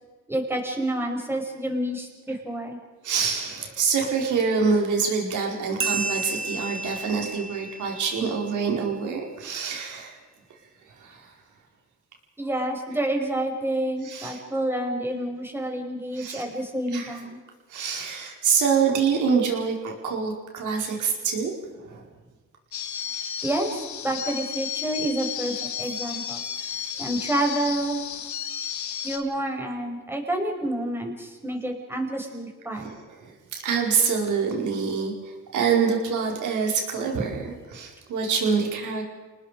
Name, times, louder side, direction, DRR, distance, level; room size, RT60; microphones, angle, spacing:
voice 1, 0.3-2.8 12.4-17.4 23.4-26.4 27.0-28.0 29.0-32.9, right 1 dB, 10° right, 1 dB, 5.5 m, -28 dB
voice 2, 3.0-10.2 11.0-11.3 14.0-14.4 16.2-16.5 16.9-17.1 17.7-21.5 21.8-22.0 32.7-32.9 33.2-35.1 35.5-39.0, right 5 dB, 80° right, 0 dB, 4.9 m, -26 dB
sound 1, 5.8-8.8, right 3 dB, 45° right, 2.2 m, -32 dB
sound 2, 22.7-29.2, left 9 dB, 70° left, 2.0 m, -33 dB
29.0 x 19.5 x 5.1 m, 1.3 s
cardioid pair, 90°, 30 cm